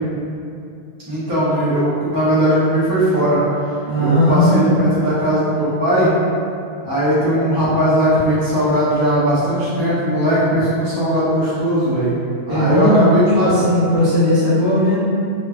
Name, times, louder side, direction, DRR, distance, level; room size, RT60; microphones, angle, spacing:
voice 1, 1.1-3.4 4.0-6.1 6.8-12.1 12.5-13.6, equal, 25° right, -11 dB, 0.6 m, -18 dB
voice 2, 3.9-4.8 12.5-13.1 13.4-15.0, left 1 dB, 45° right, -11 dB, 0.9 m, -16 dB
3.0 x 2.2 x 2.3 m, 2.5 s
omnidirectional pair, 1.1 m